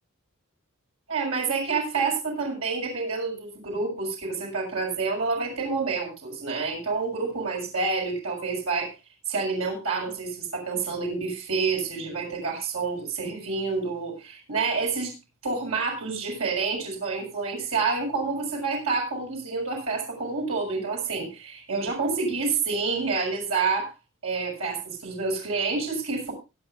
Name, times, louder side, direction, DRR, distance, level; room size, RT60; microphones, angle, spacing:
voice 1, 1.1-8.9 9.3-15.1 15.4-23.9 24.2-26.3, right 4 dB, 80° right, -1 dB, 6.9 m, -28 dB
24.0 x 9.0 x 2.6 m, 0.28 s
head